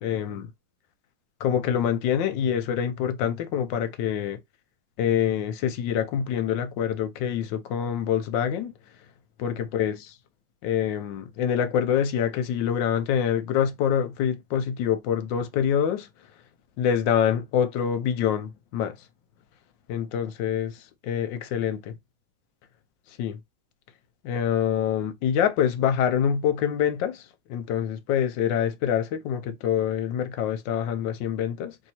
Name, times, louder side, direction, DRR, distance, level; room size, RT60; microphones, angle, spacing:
voice 1, 0.0-0.5 1.4-4.4 5.0-8.7 9.4-10.0 10.6-16.1 16.8-19.0 19.9-22.0 23.2-23.4 24.2-31.8, left 9 dB, 70° left, 1.2 m, -26 dB
3.2 x 2.7 x 4.2 m
omnidirectional pair, 2.3 m